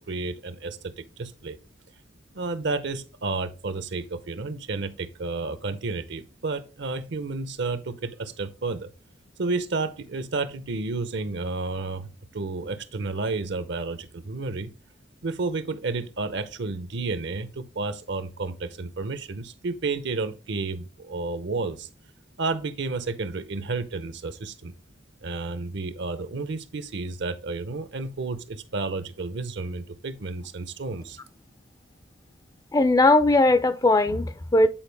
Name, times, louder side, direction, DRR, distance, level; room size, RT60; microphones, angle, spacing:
voice 1, 0.1-1.6 2.3-8.9 9.4-14.7 15.2-21.9 22.4-24.7 25.2-31.2, right 3 dB, 65° right, 0.7 m, -31 dB
voice 2, 32.7-34.7, left 2 dB, 20° left, 0.4 m, -19 dB
8.8 x 4.5 x 3.4 m
head